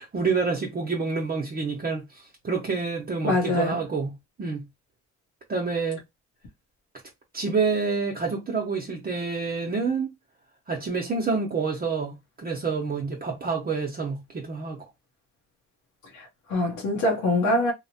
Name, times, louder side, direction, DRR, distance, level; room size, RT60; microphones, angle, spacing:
voice 1, 0.0-4.7 5.5-6.0 7.3-10.1 10.7-14.9, right 4 dB, 30° right, 0.6 m, -28 dB
voice 2, 3.2-3.8 16.1-17.7, left 1 dB, 90° left, 0.8 m, -24 dB
3.0 x 2.1 x 2.7 m
cardioid pair, 90°, 30 cm